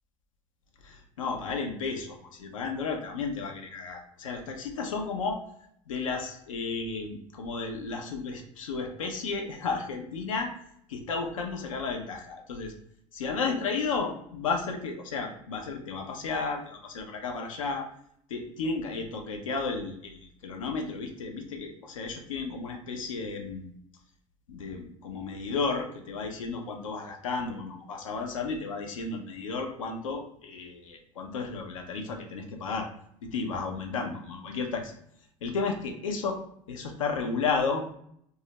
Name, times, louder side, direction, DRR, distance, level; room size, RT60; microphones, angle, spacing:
voice 1, 0.8-5.4 5.9-10.5 10.9-12.7 13.1-17.9 18.3-23.7 24.5-32.9 33.2-34.9 35.4-36.4 36.7-37.9, left 4 dB, 90° left, 4 dB, 0.4 m, -33 dB
2.3 x 2.0 x 2.7 m, 0.69 s
hypercardioid pair, 75°, 16 cm